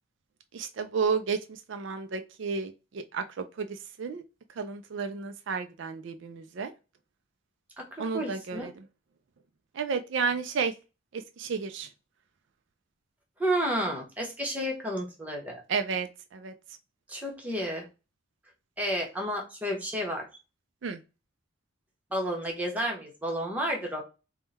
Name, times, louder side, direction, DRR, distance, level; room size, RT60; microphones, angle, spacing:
voice 1, 0.5-4.2 4.6-6.7 8.0-8.7 9.7-10.7 11.1-11.9 15.7-16.5 20.8-21.0, right 5 dB, 65° right, 0.4 m, -32 dB
voice 2, 8.1-8.7 13.4-15.6 17.1-17.9 18.8-20.3 22.1-24.0, equal, 10° right, 1.0 m, -31 dB
3.6 x 2.2 x 4.0 m
head